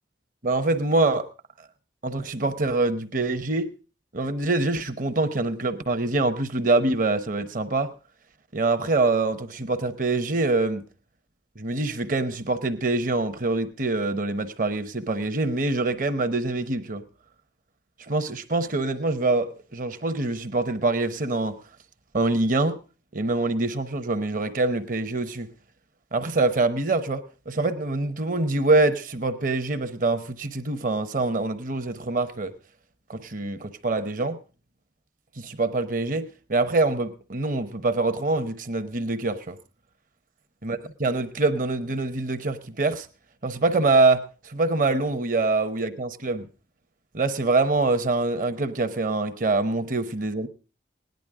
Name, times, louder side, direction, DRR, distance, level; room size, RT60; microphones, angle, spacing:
voice 1, 0.4-1.3 2.0-3.7 4.1-7.9 8.5-10.9 11.6-17.0 18.1-21.6 22.1-22.8 23.1-25.5 26.1-32.5 33.1-34.4 35.4-39.6 40.6-43.1 43.4-46.5 47.1-50.5, right 3 dB, 45° right, 0.9 m, -25 dB
17.5 x 10.5 x 3.6 m
head